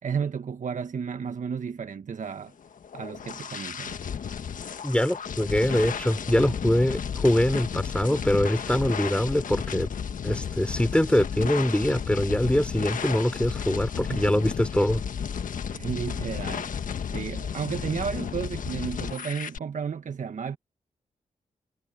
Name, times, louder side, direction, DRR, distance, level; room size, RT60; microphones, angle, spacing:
voice 1, 0.0-2.5 2.9-4.0 14.1-14.3 15.5-20.6, right 6 dB, 60° right, 1.6 m, -33 dB
sound 1, 2.6-19.6, left 7 dB, 65° left, 1.5 m, -33 dB
voice 2, 4.8-9.9 10.2-15.0, left 1 dB, 10° left, 4.2 m, -24 dB
supercardioid pair, 45°, 14 cm